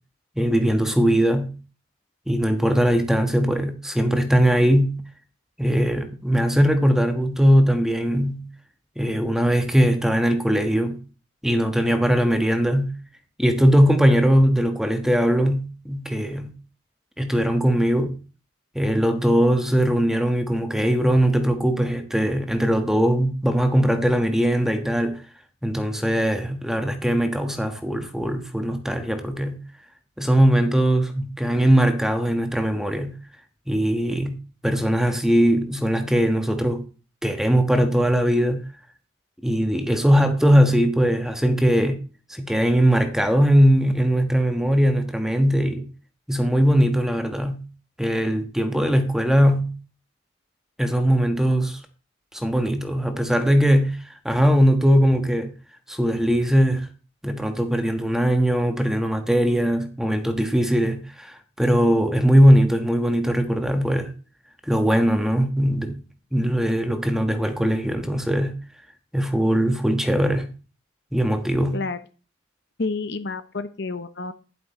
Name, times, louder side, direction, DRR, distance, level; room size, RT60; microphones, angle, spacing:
voice 1, 0.4-1.6 2.3-5.0 5.6-8.5 9.0-11.0 11.4-13.0 13.4-16.5 17.2-18.2 18.7-25.2 25.6-29.6 30.2-33.2 33.7-36.9 37.2-38.6 39.4-42.0 42.3-45.9 46.3-47.7 48.0-49.7 50.8-51.8 52.3-54.0 54.2-55.5 55.9-56.9 57.2-64.1 64.7-66.0 66.3-68.6 69.1-70.5 71.1-71.8, equal, ahead, 1.3 m, -20 dB
voice 2, 72.8-74.3, left 3 dB, 55° left, 0.9 m, -29 dB
12.0 x 11.0 x 4.3 m
head